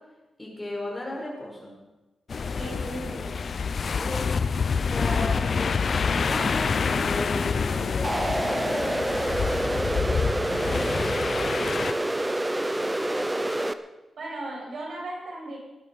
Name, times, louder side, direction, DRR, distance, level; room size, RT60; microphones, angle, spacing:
voice 1, 0.4-1.7 3.9-4.3 4.9-9.1 9.8-10.9, left 1 dB, 10° left, -2 dB, 5.2 m, -36 dB
sound 1, 2.3-11.9, left 5 dB, 45° left, 0.6 m, -27 dB
voice 2, 2.5-3.4 11.8-12.0 14.2-15.6, right 2 dB, 70° right, -3 dB, 7.0 m, -37 dB
sound 2, 8.0-13.7, right 1 dB, 10° right, 0.7 m, -27 dB
18.5 x 11.5 x 5.5 m, 1.0 s
wide cardioid pair, 135°, 0 cm